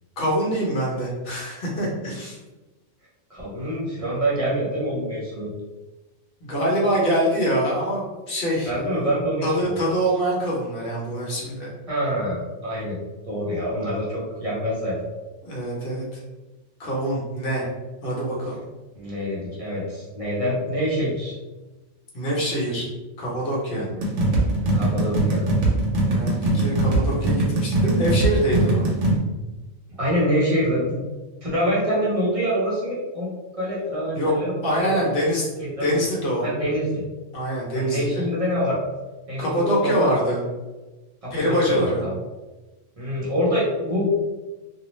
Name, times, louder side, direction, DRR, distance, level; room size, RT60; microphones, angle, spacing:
voice 1, 0.2-2.4 6.4-9.0 9.4-11.7 15.4-16.2 16.8-17.7 18.0-18.6 22.1-22.9 23.2-23.9 26.0-28.9 34.1-34.3 34.6-35.5 35.8-36.5 37.3-38.2 39.4-40.4 41.3-42.0, equal, 50° left, -4 dB, 1.0 m, -24 dB
voice 2, 3.3-5.5 8.6-9.8 11.9-13.0 13.2-15.0 18.9-21.4 23.7-24.0 24.7-25.4 30.0-31.0 31.4-35.2 35.6-36.0 36.4-37.0 37.7-38.8 39.3-40.1 41.2-42.1 43.0-44.2, equal, 35° right, -6 dB, 0.7 m, -26 dB
sound 1, 24.0-29.2, right 2 dB, 75° right, 1.0 m, -21 dB
2.6 x 2.0 x 3.0 m, 1.2 s
omnidirectional pair, 1.2 m